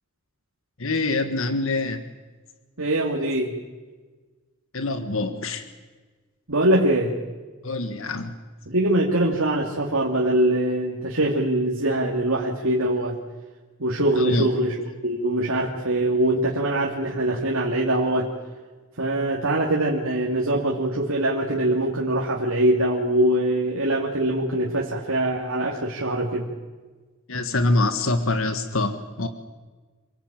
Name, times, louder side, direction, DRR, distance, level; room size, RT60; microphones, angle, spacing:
voice 1, 0.8-2.0 4.7-5.6 7.6-8.3 14.2-14.5 27.3-29.3, left 2 dB, 75° left, 9 dB, 1.7 m, -25 dB
voice 2, 2.8-3.6 6.5-7.2 8.7-13.2 13.8-14.8 15.0-18.3 19.0-26.5, right 1 dB, 80° right, -2 dB, 2.8 m, -23 dB
27.5 x 18.0 x 9.1 m, 1.3 s
head